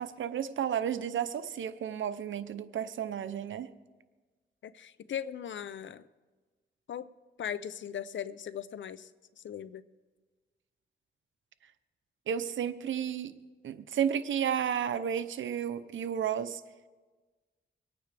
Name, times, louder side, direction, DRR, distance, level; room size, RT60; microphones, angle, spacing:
voice 1, 0.0-3.7 12.3-13.3 13.6-16.6, right 8 dB, 90° right, 12 dB, 0.7 m, -32 dB
voice 2, 4.6-6.1 6.9-7.1 7.4-9.1 9.4-9.8, left 9 dB, 80° left, 15 dB, 0.6 m, -38 dB
25.5 x 9.3 x 3.4 m, 1.3 s
cardioid pair, 70°, 19 cm